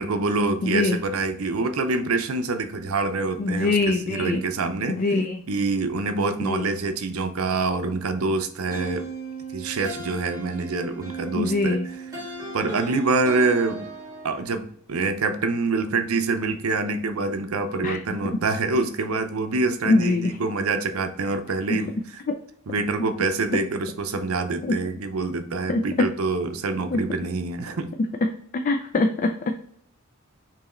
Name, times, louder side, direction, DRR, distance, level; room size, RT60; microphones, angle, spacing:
voice 1, 0.0-5.0 5.5-9.1 9.5-12.2 12.5-13.9 14.2-22.2 22.7-27.9, right 3 dB, 75° right, 8 dB, 0.6 m, -26 dB
voice 2, 0.6-1.0 3.4-4.4 4.9-5.4 6.4-6.7 11.4-11.9 17.8-18.0 19.9-20.3 22.3-22.4 24.6-24.7 25.7-26.1 26.9-27.0 28.6-29.3, left 3 dB, 40° left, 4 dB, 0.3 m, -22 dB
sound 1, 8.7-14.5, right 3 dB, 15° right, 1.8 m, -36 dB
4.6 x 3.0 x 3.1 m, 0.62 s
head